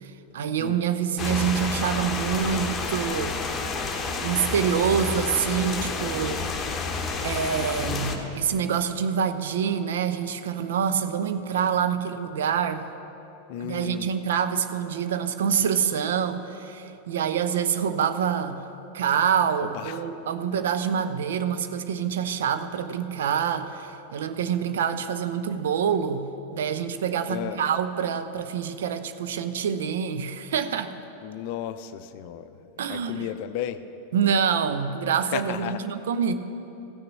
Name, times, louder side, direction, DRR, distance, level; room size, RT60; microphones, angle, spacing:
voice 1, 0.0-3.4 4.2-6.5 7.2-12.9 13.6-18.6 18.9-26.2 26.5-30.9 32.8-33.3 34.1-36.3, right 7 dB, 60° right, 10 dB, 0.6 m, -26 dB
sound 1, 1.2-8.2, left 4 dB, 20° left, 1.2 m, -30 dB
voice 2, 13.5-14.1 19.6-20.0 27.3-27.6 31.2-33.8 35.2-35.8, left 11 dB, 45° left, 12 dB, 0.5 m, -34 dB
14.5 x 6.7 x 7.4 m, 3.0 s
figure-of-eight pair, 90°, 0 cm